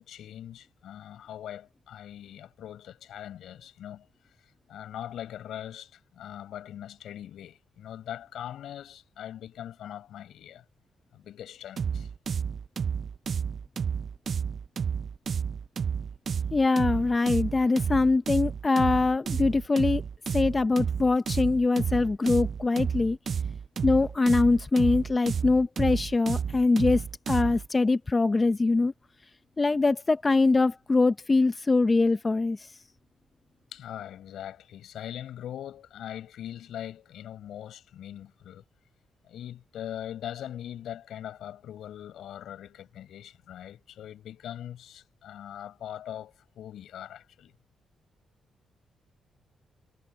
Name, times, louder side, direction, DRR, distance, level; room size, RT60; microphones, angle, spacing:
voice 1, 0.0-4.1 4.7-10.6 11.1-12.1 33.7-38.6 39.2-47.5, left 11 dB, 80° left, 7.4 m, -41 dB
sound 1, 11.8-27.7, right 7 dB, 50° right, 0.3 m, -31 dB
voice 2, 16.5-20.0 20.3-23.2 23.8-28.9 29.6-32.7, left 3 dB, 25° left, 0.7 m, -23 dB
cardioid pair, 95°, 0 cm